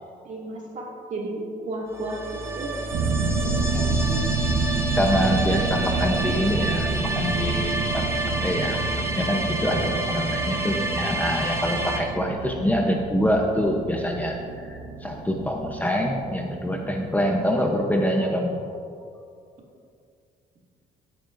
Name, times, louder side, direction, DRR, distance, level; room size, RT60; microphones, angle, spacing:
voice 1, 0.2-2.2 2.5-2.7 3.4-4.2 10.4-11.0, right 2 dB, 45° right, -2 dB, 2.3 m, -34 dB
sound 1, 1.9-12.0, right 1 dB, 15° right, 1.4 m, -29 dB
sound 2, 2.9-17.4 17.7-17.8, right 3 dB, 80° right, 1.2 m, -29 dB
voice 2, 5.0-18.6, equal, 10° left, 1 dB, 0.9 m, -25 dB
16.5 x 8.8 x 2.7 m, 2.4 s
cardioid pair, 110°, 17 cm